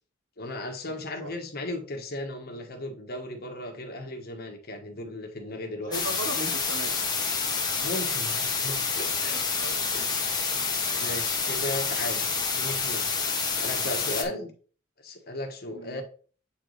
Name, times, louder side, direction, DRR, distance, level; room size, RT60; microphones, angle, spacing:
voice 1, 0.4-5.9 7.8-9.4 9.9-10.2 10.9-13.1 13.5-14.5 15.0-16.0, left 1 dB, 50° left, 3 dB, 1.3 m, -36 dB
voice 2, 0.9-1.3 5.8-7.5 9.3-9.8 14.2-14.5 15.7-16.0, right 1 dB, 80° right, 5 dB, 1.4 m, -38 dB
sound 1, 5.9-14.2, left 5 dB, 20° left, 1.1 m, -28 dB
8.2 x 3.9 x 3.3 m, 0.40 s
head